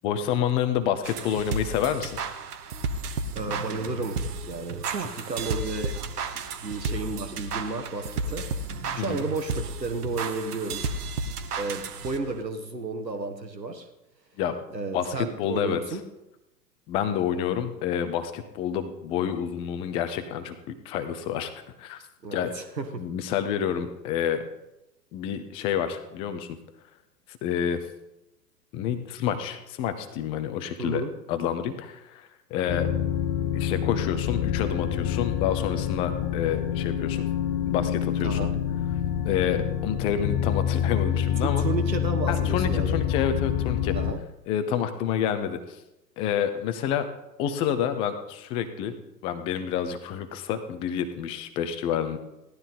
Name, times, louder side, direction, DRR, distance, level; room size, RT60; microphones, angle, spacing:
voice 1, 0.0-2.1 5.0-5.3 9.0-9.2 14.4-14.5 14.9-15.8 16.9-20.5 20.8-21.5 21.8-22.0 22.3-22.5 23.0-24.4 25.1-26.5 27.4-27.8 28.7-32.9 33.5-37.2 37.7-38.5 39.2-41.6 42.3-43.9 44.5-45.8 46.2-47.1 47.4-48.9 49.2-52.2, left 9 dB, 10° left, 9 dB, 0.4 m, -28 dB
sound 1, 1.0-12.4, right 4 dB, 65° right, 1.2 m, -33 dB
voice 2, 3.3-4.2 4.5-5.9 6.6-8.5 8.9-10.8 11.6-13.9 14.7-16.0 22.2-23.0 30.8-31.1 38.2-38.5 41.4-43.0 43.9-44.2, right 3 dB, 90° right, 7 dB, 1.7 m, -32 dB
sound 2, 32.7-44.1, left 9 dB, 25° left, 0.8 m, -27 dB
16.5 x 12.0 x 3.7 m, 0.93 s
figure-of-eight pair, 105°, 49 cm